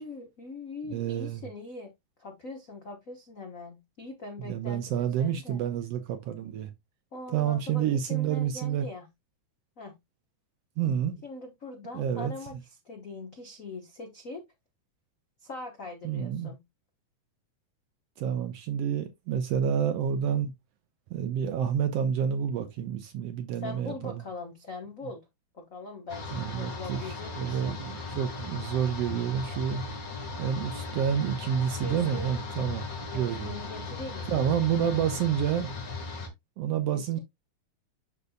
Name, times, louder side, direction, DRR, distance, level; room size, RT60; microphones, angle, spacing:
voice 1, 0.0-1.9 2.2-5.6 7.1-9.1 9.8-10.0 11.2-14.4 15.4-16.6 23.6-25.2 25.5-27.8 31.8-32.3 33.1-34.5 36.9-37.2, left 2 dB, 75° left, 0.7 m, -42 dB
voice 2, 0.9-1.4 4.4-6.7 7.3-8.9 10.8-11.2 11.9-12.3 16.0-16.5 18.2-20.5 21.1-24.2 26.3-29.8 30.4-33.5 34.3-35.7 36.6-37.2, right 8 dB, 75° right, 1.6 m, -29 dB
sound 1, 26.1-36.3, left 3 dB, 35° left, 1.6 m, -37 dB
12.0 x 4.0 x 2.2 m
omnidirectional pair, 3.4 m